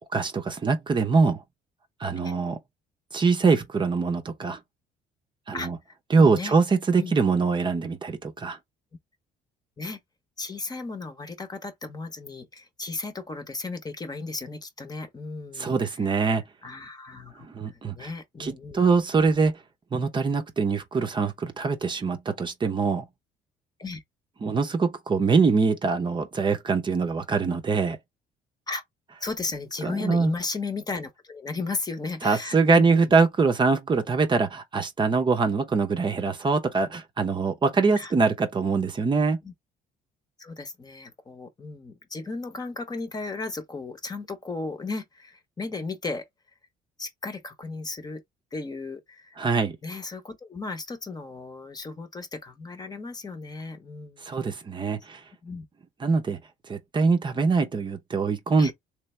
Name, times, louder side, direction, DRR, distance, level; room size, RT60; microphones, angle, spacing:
voice 1, 0.1-1.4 2.0-2.6 3.1-4.6 5.5-5.8 6.1-8.6 15.6-16.4 17.4-18.1 18.4-19.6 19.9-23.1 24.4-28.0 29.8-30.3 32.2-39.4 49.4-49.8 54.2-55.2 56.0-56.4 56.7-58.7, right 4 dB, 30° right, 0.8 m, -23 dB
voice 2, 6.2-6.5 7.0-7.1 9.8-10.0 10.4-15.8 16.6-18.9 23.8-24.0 28.7-28.8 29.2-33.1 38.0-38.1 39.4-39.5 40.4-46.3 47.0-48.2 48.5-49.3 49.8-54.3 55.4-55.7 58.6-58.7, left 3 dB, 25° left, 1.0 m, -35 dB
3.3 x 3.3 x 3.2 m
cardioid pair, 110°, 17 cm